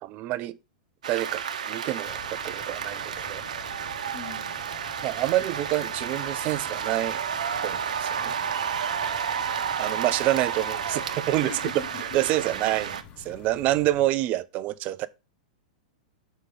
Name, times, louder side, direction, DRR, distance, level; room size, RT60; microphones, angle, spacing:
voice 1, 0.0-0.6 1.1-1.4 1.7-3.4 5.0-7.2 7.6-8.6 9.8-11.6 12.1-15.1, right 15 dB, 40° right, 0.6 m, -27 dB
sound 1, 1.0-13.0, right 7 dB, 75° right, 0.9 m, -31 dB
sound 2, 2.0-14.1, left 7 dB, 35° left, 1.1 m, -49 dB
voice 2, 4.1-4.6 11.4-12.0 12.7-12.8, left 5 dB, 60° left, 1.4 m, -40 dB
6.5 x 5.2 x 5.5 m
hypercardioid pair, 105°, 4 cm